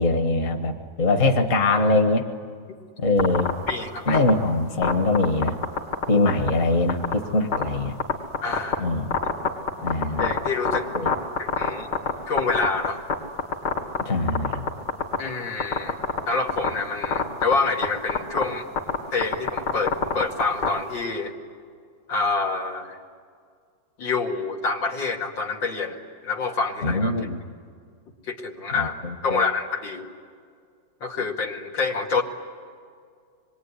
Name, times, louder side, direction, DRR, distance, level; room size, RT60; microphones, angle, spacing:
voice 1, 0.0-2.3 3.0-3.5 4.1-5.6 6.1-8.0 8.8-9.1 9.8-10.3 10.9-11.1 14.1-14.7 26.8-27.4 28.8-28.9 29.3-29.5, left 2 dB, 45° left, 6 dB, 1.9 m, -22 dB
sound 1, 3.2-3.7 4.1-4.3 4.8-6.0 6.3-6.5 6.9-7.1 7.5-7.6 8.0-8.7 9.1-12.1 12.4-13.1 13.4-14.0 14.3-15.2 15.6-16.2 16.5-16.7 17.0-17.5 17.8-17.9 18.1-18.4 18.8-20.7, left 6 dB, 60° left, 3.3 m, -22 dB
voice 2, 3.7-4.2 8.4-8.9 10.2-10.9 11.4-11.9 12.3-13.0 15.2-16.0 16.3-18.6 19.1-21.3 22.1-23.0 24.0-27.1 28.3-28.9 29.2-30.1 31.0-32.2, left 4 dB, 85° left, 1 dB, 3.0 m, -27 dB
26.5 x 22.5 x 9.9 m, 2.2 s
omnidirectional pair, 2.0 m